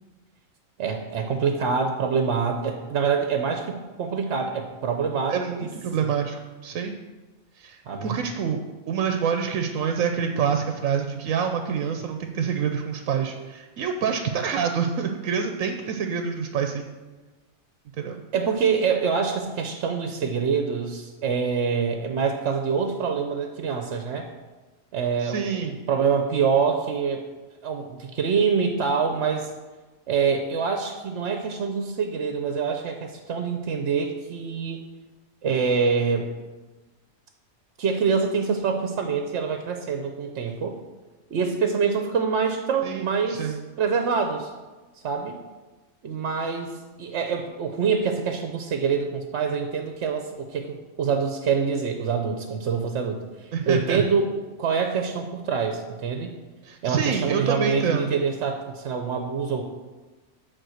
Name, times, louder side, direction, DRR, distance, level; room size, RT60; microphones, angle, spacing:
voice 1, 0.8-5.7 6.0-6.1 7.9-8.2 18.3-24.3 24.9-25.5 25.9-27.2 27.6-29.5 30.1-34.8 35.4-36.3 37.8-40.8 41.3-44.5 45.0-45.4 46.0-54.3 54.6-56.3 56.8-59.6, right 5 dB, 65° right, 4 dB, 1.0 m, -25 dB
voice 2, 5.3-6.9 7.6-8.6 8.9-16.9 18.0-18.2 25.2-25.8 42.8-43.6 53.5-54.0 56.6-58.1, right 7 dB, 85° right, 5 dB, 1.0 m, -27 dB
9.2 x 4.2 x 6.3 m, 1.2 s
omnidirectional pair, 1.4 m